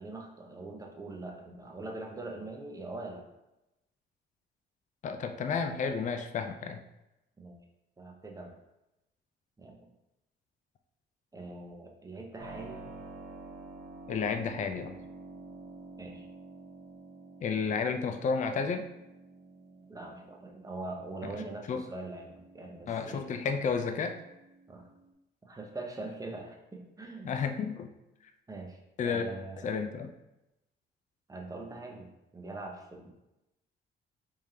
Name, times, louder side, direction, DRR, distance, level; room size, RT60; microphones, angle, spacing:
voice 1, 0.0-3.2 7.4-7.6 8.0-8.6 9.6-9.9 11.3-12.8 16.0-16.3 19.9-23.2 24.7-24.9 25.4-27.3 28.5-29.6 31.3-33.1, right 2 dB, 15° right, 1 dB, 0.7 m, -42 dB
voice 2, 5.0-6.8 14.1-14.9 17.4-18.9 21.7-21.8 22.9-24.2 27.2-27.9 29.0-29.2 29.6-30.1, left 5 dB, 40° left, 7 dB, 0.4 m, -31 dB
Keyboard (musical), 12.4-25.1, right 3 dB, 55° right, 1.0 m, -50 dB
3.6 x 3.2 x 2.7 m, 0.93 s
cardioid pair, 90°, 20 cm